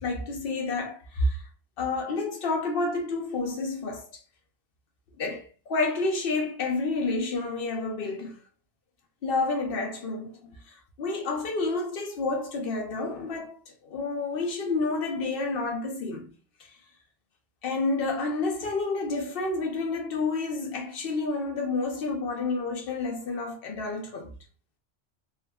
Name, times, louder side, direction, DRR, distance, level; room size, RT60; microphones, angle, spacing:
voice 1, 0.0-1.4 1.8-4.1 5.2-8.4 9.2-10.5 11.0-16.3 17.6-24.3, left 3 dB, 55° left, 0.8 m, -29 dB
3.4 x 2.1 x 2.2 m
omnidirectional pair, 1.3 m